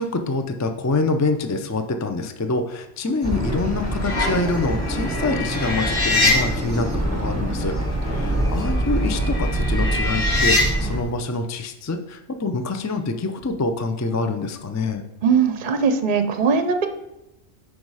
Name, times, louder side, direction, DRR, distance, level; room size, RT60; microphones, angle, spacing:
voice 1, 0.0-15.0, left 3 dB, 25° left, 7 dB, 0.4 m, -26 dB
sound 1, 3.2-3.3 3.8-6.9 7.7-7.8 8.1-10.7, left 2 dB, 80° left, 1.8 m, -25 dB
sound 2, 3.2-11.0, right 1 dB, 15° right, 1.3 m, -25 dB
voice 2, 15.2-16.9, right 5 dB, 50° right, 8 dB, 0.7 m, -20 dB
9.5 x 4.9 x 4.8 m, 0.94 s
omnidirectional pair, 1.1 m